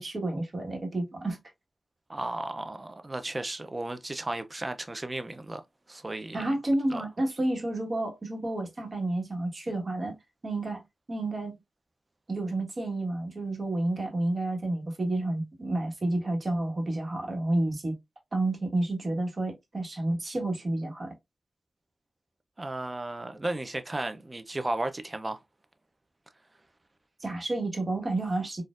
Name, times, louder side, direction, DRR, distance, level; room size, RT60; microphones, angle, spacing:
voice 1, 0.0-1.4 6.3-10.2 10.4-10.8 11.1-11.6 12.3-17.9 18.3-21.1 27.2-28.6, right 2 dB, 55° right, 1.4 m, -30 dB
voice 2, 2.1-5.6 5.9-6.4 6.9-7.0 22.6-25.4, right 2 dB, 35° right, 0.6 m, -34 dB
4.2 x 2.6 x 2.4 m
cardioid pair, 45°, 0 cm